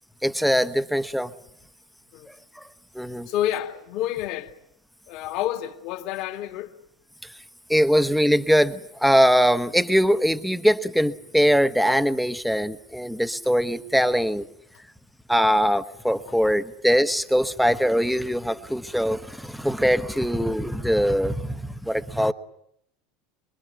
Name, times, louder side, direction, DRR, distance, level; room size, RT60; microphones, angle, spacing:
voice 1, 0.2-1.3 2.3-2.6 2.9-3.3 7.7-14.4 15.3-22.3, equal, ahead, 1.1 m, -22 dB
voice 2, 3.3-4.5 5.1-6.7 15.4-15.6 16.3-16.6, left 12 dB, 60° left, 2.2 m, -29 dB
25.0 x 22.5 x 9.4 m
hypercardioid pair, 85°, 0 cm